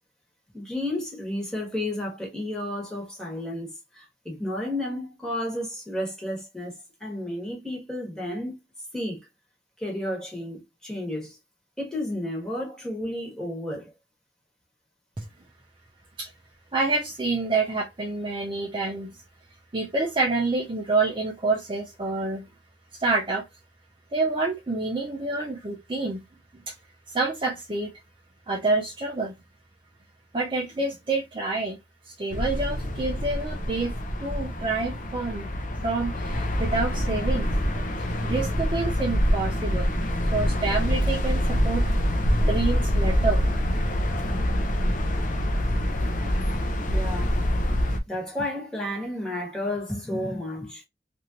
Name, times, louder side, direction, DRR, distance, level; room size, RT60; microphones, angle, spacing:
voice 1, 0.5-8.5 8.9-9.2 9.8-11.4 11.8-13.9 46.9-47.4 48.1-50.8, left 1 dB, 5° left, 1.2 m, -32 dB
voice 2, 16.7-19.1 19.7-22.4 22.9-23.4 24.1-26.2 26.7-26.8 27.1-27.9 28.5-29.4 30.3-31.8 32.0-33.9 34.2-35.5 35.7-37.5 38.0-39.9 40.3-41.8 42.4-43.5, right 3 dB, 25° right, 0.5 m, -27 dB
sound 1, 32.3-48.0, equal, 45° left, 0.6 m, -25 dB
3.1 x 2.5 x 2.7 m
head